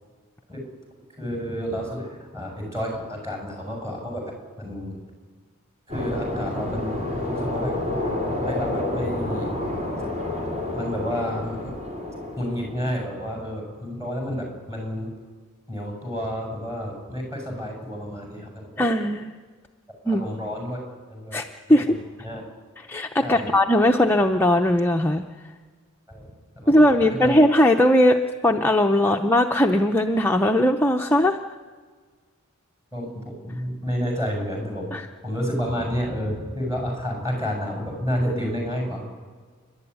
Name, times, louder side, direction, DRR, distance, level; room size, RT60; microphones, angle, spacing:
voice 1, 1.2-5.0 5.9-7.7 8.3-9.6 10.7-11.7 12.4-15.1 15.7-18.8 20.0-20.8 21.1-21.4 21.7-22.4 23.2-23.6 26.1-26.3 26.5-26.7 27.0-27.3 29.0-29.1 32.9-34.9 35.2-39.0, equal, 15° right, 0 dB, 6.7 m, -30 dB
sound 1, 5.9-13.0, left 1 dB, 35° right, 5.3 m, -29 dB
voice 2, 18.8-19.4 20.1-20.2 21.3-22.0 22.8-25.2 26.7-31.4 34.9-35.1, left 1 dB, 10° left, 3 dB, 0.7 m, -19 dB
30.0 x 12.0 x 9.6 m, 1.5 s
head